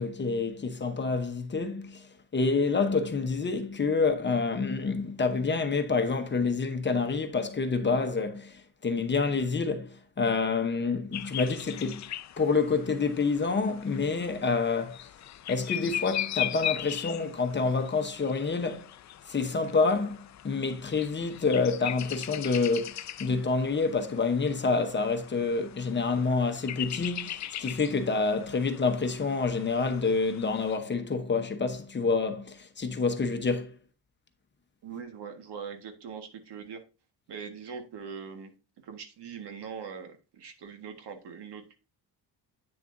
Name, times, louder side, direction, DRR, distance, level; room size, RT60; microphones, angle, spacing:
voice 1, 0.0-2.1 2.3-12.1 12.4-15.1 15.5-18.9 19.3-33.7, left 4 dB, 25° left, 0.9 m, -28 dB
sound 1, 11.1-30.8, left 11 dB, 45° left, 0.5 m, -39 dB
voice 2, 34.8-36.8 37.3-38.5 38.8-41.8, right 6 dB, 70° right, 1.6 m, -42 dB
8.9 x 6.7 x 2.6 m
cardioid pair, 150°, 41 cm